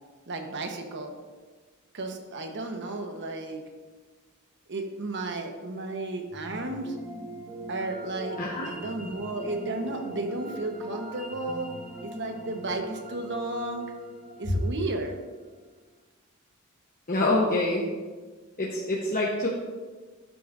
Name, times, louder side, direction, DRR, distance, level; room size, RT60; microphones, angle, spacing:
voice 1, 0.3-1.1 1.9-3.6 4.7-7.0 7.7-8.4 8.7-11.7 12.0-13.8 14.4-15.2, right 2 dB, 55° right, 4 dB, 1.1 m, -33 dB
sound 1, 6.3-15.5, right 1 dB, 5° right, 1.5 m, -42 dB
voice 2, 17.1-17.9 18.6-19.5, left 2 dB, 40° left, -3 dB, 1.1 m, -26 dB
12.0 x 8.8 x 2.6 m, 1.4 s
head